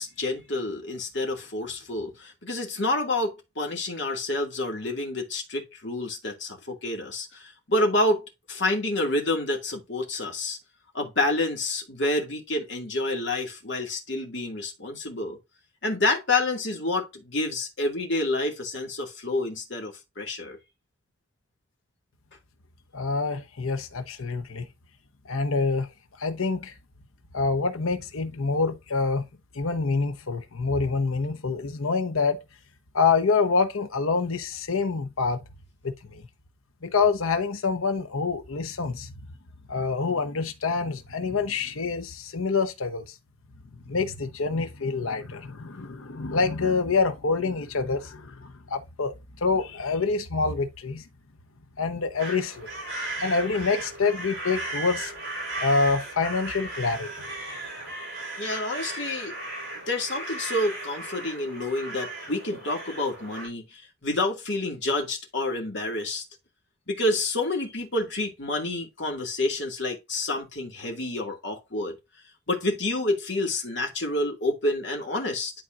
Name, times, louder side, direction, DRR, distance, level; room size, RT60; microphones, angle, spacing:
voice 1, 0.0-10.6 10.9-15.4 15.8-20.6 58.4-59.4 59.9-66.2 66.9-72.0 72.5-75.5, left 2 dB, 60° left, 2.1 m, -28 dB
voice 2, 22.9-24.7 25.2-25.9 26.2-26.7 27.3-29.2 29.5-32.4 32.9-35.4 35.8-36.2 36.8-39.1 39.7-43.1 43.9-49.1 49.4-51.0 51.8-52.7 53.2-55.1 55.6-57.3, left 4 dB, 90° left, 0.9 m, -26 dB
sound 1, 52.2-63.5, right 2 dB, 50° right, 4.3 m, -36 dB
11.5 x 4.3 x 2.5 m
head